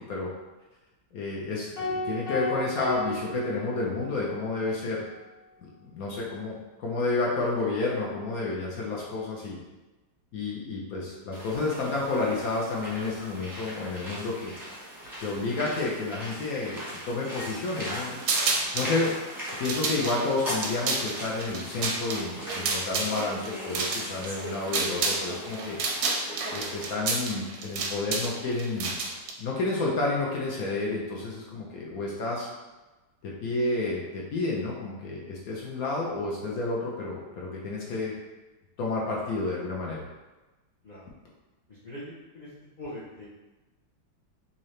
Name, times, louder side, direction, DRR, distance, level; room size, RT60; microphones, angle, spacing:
voice 1, 1.1-5.1 5.6-9.6 10.3-14.5 15.2-18.2 18.7-19.1 19.6-25.8 26.5-28.9 29.4-32.5 33.2-38.1 38.8-40.0, left 3 dB, 65° left, -3 dB, 0.9 m, -30 dB
sound 1, 1.8-4.2, left 1 dB, 25° left, 0.9 m, -33 dB
sound 2, 11.3-26.9, equal, 15° right, 0.7 m, -39 dB
sound 3, 18.2-18.9 19.5-25.3 25.5-29.3, right 4 dB, 70° right, 0.9 m, -30 dB
voice 2, 41.7-42.5 42.8-43.3, left 1 dB, 85° left, -9 dB, 0.4 m, -42 dB
3.7 x 2.8 x 3.1 m, 1.1 s
omnidirectional pair, 2.0 m